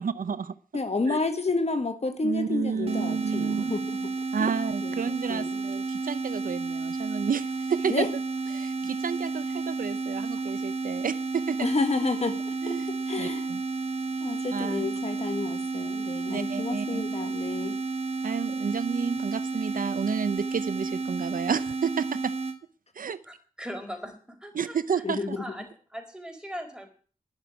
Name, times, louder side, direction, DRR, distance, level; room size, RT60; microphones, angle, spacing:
voice 1, 0.0-0.5 1.0-1.2 2.2-3.7 4.3-8.1 8.5-11.7 12.6-12.9 13.2-13.6 14.5-14.9 16.3-17.1 18.2-22.3 22.9-23.2 24.5-25.4, right 6 dB, 75° right, 15 dB, 0.6 m, -31 dB
voice 2, 0.7-4.1 4.4-4.5 4.8-5.6 7.9-8.1 11.6-12.8 13.1-13.5 14.2-17.8 25.0-25.4, left 3 dB, 50° left, 8 dB, 1.6 m, -30 dB
sound 1, 2.9-22.6, right 3 dB, 45° right, 1.6 m, -31 dB
voice 3, 23.2-24.8 25.4-26.9, equal, 5° right, 3 dB, 4.8 m, -40 dB
12.0 x 6.8 x 9.7 m, 0.42 s
wide cardioid pair, 65°, 14 cm